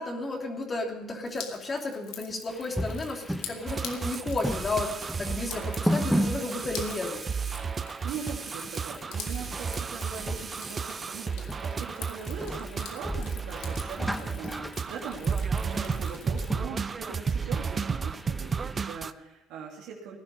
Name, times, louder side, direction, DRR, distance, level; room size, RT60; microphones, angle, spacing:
voice 1, 0.0-7.2, left 2 dB, 30° left, 1 dB, 3.0 m, -33 dB
Drip, 1.2-16.5, left 9 dB, 80° left, 2.1 m, -46 dB
sound 1, 2.5-18.9, equal, ahead, 1.1 m, -36 dB
sound 2, 3.7-19.1, right 5 dB, 30° right, 0.6 m, -33 dB
voice 2, 7.8-20.2, right 6 dB, 85° right, -2 dB, 2.8 m, -41 dB
18.0 x 10.5 x 5.4 m, 1.1 s
cardioid pair, 100°, 0 cm